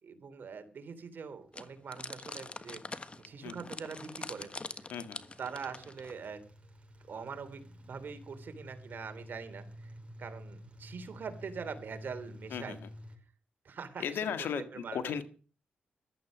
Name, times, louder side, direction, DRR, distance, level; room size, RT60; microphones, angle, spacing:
voice 1, 0.0-2.8 3.2-4.6 5.4-6.4 7.1-9.9 10.2-12.8 13.6-15.2, right 5 dB, 65° right, 9 dB, 3.1 m, -43 dB
sound 1, 1.2-13.2, equal, 35° right, 5.7 m, -52 dB
sound 2, 1.5-6.3, left 3 dB, 35° left, 1.4 m, -44 dB
voice 2, 4.9-5.2 12.5-12.8 14.0-15.2, left 8 dB, 90° left, 10 dB, 1.8 m, -36 dB
14.5 x 12.5 x 6.2 m, 0.38 s
cardioid pair, 60°, 4 cm